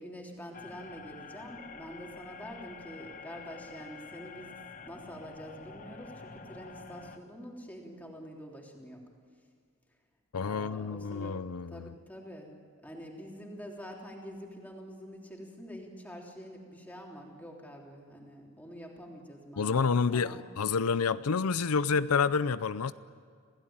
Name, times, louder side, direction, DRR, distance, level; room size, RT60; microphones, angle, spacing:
voice 1, 0.0-4.5 4.8-9.0 10.4-11.3 11.7-12.5 12.8-20.4, equal, 5° left, 3.4 m, -46 dB
sound 1, 0.5-7.2, left 4 dB, 35° left, 1.2 m, -48 dB
voice 2, 10.3-11.9 19.6-22.9, left 5 dB, 85° left, 0.6 m, -29 dB
27.5 x 17.0 x 8.8 m
head